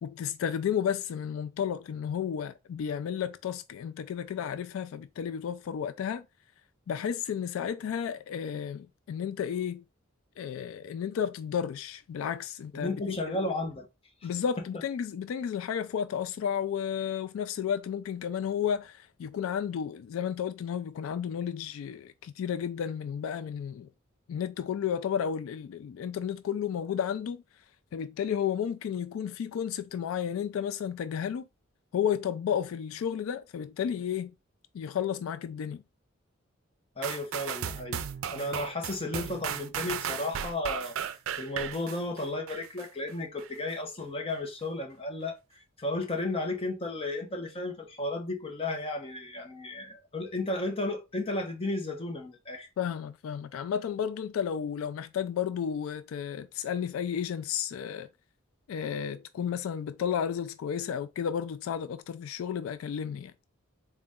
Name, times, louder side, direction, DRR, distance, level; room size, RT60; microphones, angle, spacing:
voice 1, 0.0-6.3 6.9-9.8 10.4-13.5 14.2-23.9 24.3-27.4 27.9-31.5 31.9-34.3 34.7-35.8 52.8-58.1 58.7-63.3, left 8 dB, 85° left, 0.3 m, -32 dB
voice 2, 12.7-13.9 37.0-38.0 38.3-41.0 41.4-45.4 45.8-52.7, left 2 dB, 30° left, 0.8 m, -33 dB
sound 1, 37.0-42.9 43.4-43.5, right 8 dB, 90° right, 0.4 m, -35 dB
3.9 x 2.2 x 3.5 m
head